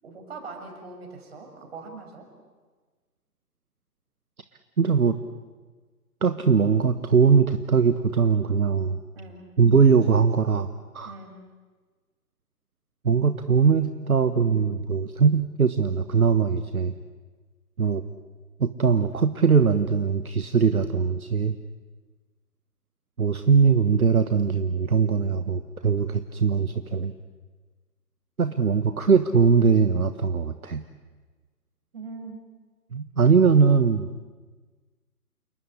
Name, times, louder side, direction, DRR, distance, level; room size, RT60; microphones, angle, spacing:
voice 1, 0.0-2.3 9.1-9.4 11.0-11.3 31.9-32.4, right 3 dB, 40° right, 3 dB, 6.6 m, -41 dB
voice 2, 4.8-5.2 6.2-9.0 9.6-11.1 13.0-16.9 17.8-18.0 18.6-21.6 23.2-27.1 28.4-30.8 32.9-34.1, right 5 dB, 65° right, 10 dB, 1.4 m, -21 dB
29.0 x 19.0 x 9.9 m, 1.4 s
figure-of-eight pair, 140°, 47 cm